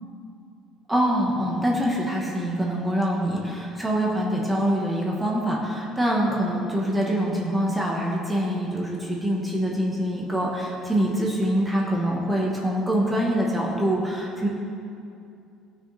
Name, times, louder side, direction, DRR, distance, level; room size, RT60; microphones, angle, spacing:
voice 1, 0.9-14.5, equal, 10° right, -3 dB, 1.6 m, -24 dB
17.0 x 6.3 x 4.2 m, 2.6 s
cardioid pair, 120°, 0 cm